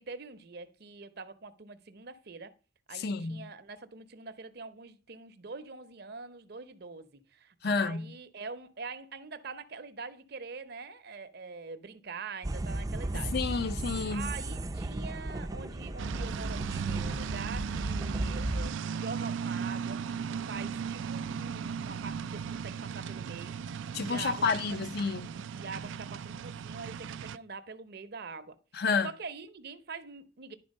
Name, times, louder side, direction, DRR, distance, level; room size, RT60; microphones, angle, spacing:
voice 1, 0.0-2.5 2.9-13.4 14.1-23.6 24.0-24.5 25.1-28.6 29.0-30.6, right 4 dB, 60° right, 0.7 m, -44 dB
voice 2, 2.9-3.5 7.6-8.1 13.1-14.3 23.9-25.3 28.7-29.1, left 4 dB, 60° left, 0.5 m, -30 dB
sound 1, 12.4-18.7, right 1 dB, 20° right, 0.4 m, -35 dB
sound 2, 16.0-27.4, right 7 dB, 90° right, 0.4 m, -37 dB
10.5 x 4.4 x 5.3 m
head